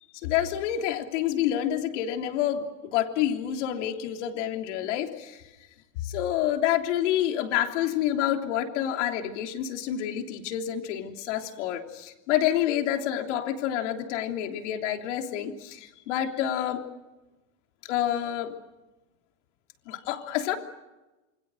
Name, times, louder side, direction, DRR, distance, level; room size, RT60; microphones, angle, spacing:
voice 1, 0.2-2.7 2.9-5.4 6.0-16.8 17.9-18.5 19.9-20.6, left 11 dB, 60° left, 5 dB, 3.3 m, -28 dB
27.5 x 24.5 x 6.4 m, 1.1 s
supercardioid pair, 180°, 40 cm